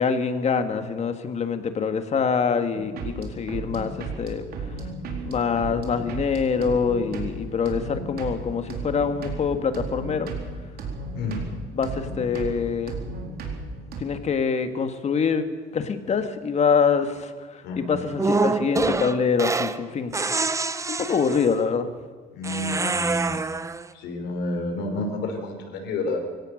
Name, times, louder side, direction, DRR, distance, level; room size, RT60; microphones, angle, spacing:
voice 1, 0.0-4.4 5.2-10.3 11.3-11.4 11.7-12.9 14.0-15.4 15.7-20.1 20.9-21.9, left 6 dB, 40° left, 8 dB, 2.0 m, -25 dB
sound 1, 2.7-14.0, right 3 dB, 65° right, 4.1 m, -35 dB
voice 2, 11.1-11.5 17.6-17.9 22.3-23.5 23.9-26.2, left 2 dB, 80° left, 3 dB, 5.0 m, -30 dB
sound 2, 18.2-19.8 20.1-21.6 22.4-23.8, right 3 dB, 20° right, 1.0 m, -26 dB
24.0 x 17.0 x 6.6 m, 1.5 s
cardioid pair, 110°, 17 cm